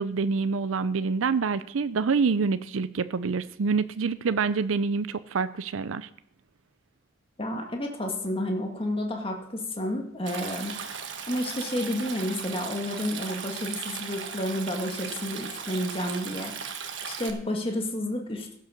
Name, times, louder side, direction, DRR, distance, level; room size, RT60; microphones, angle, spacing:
voice 1, 0.0-6.1, right 5 dB, 80° right, 14 dB, 0.5 m, -26 dB
voice 2, 7.4-10.8 11.3-16.6 17.0-18.5, left 1 dB, 25° left, 2 dB, 1.8 m, -30 dB
Stream, 10.3-17.3, right 6 dB, 60° right, 1.4 m, -37 dB
16.0 x 6.5 x 6.4 m, 0.70 s
head